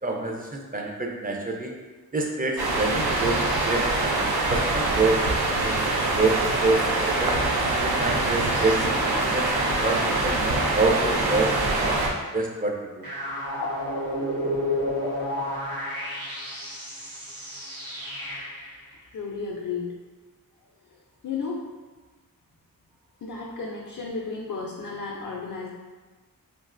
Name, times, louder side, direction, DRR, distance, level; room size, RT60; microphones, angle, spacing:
voice 1, 0.0-1.7 2.1-3.4 3.6-7.3 7.7-9.5 9.8-12.0 12.3-13.1, right 2 dB, 25° right, 0 dB, 0.4 m, -27 dB
sound 1, 2.6-12.1, right 2 dB, 90° right, 0.5 m, -24 dB
sound 2, 13.0-18.7, left 1 dB, 70° right, 1.1 m, -31 dB
voice 2, 19.1-19.9 20.9-21.6 23.2-25.7, left 4 dB, 60° left, -2 dB, 0.4 m, -33 dB
3.2 x 2.4 x 2.4 m, 1.3 s
wide cardioid pair, 70°, 36 cm